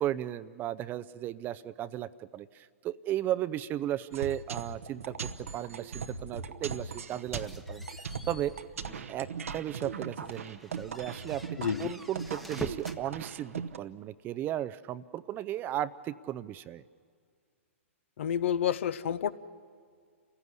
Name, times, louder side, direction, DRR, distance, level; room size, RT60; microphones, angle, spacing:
voice 1, 0.0-8.6 9.1-16.8, right 12 dB, 25° right, 15 dB, 0.5 m, -35 dB
sound 1, 4.1-13.8, right 5 dB, 80° right, 1.0 m, -39 dB
sound 2, 7.1-9.2 9.7-9.8 10.2-13.0, left 1 dB, ahead, 0.9 m, -47 dB
voice 2, 11.6-11.9 18.2-19.3, left 9 dB, 60° left, 15 dB, 0.9 m, -29 dB
28.0 x 15.5 x 9.6 m, 2.1 s
hypercardioid pair, 125°, 7 cm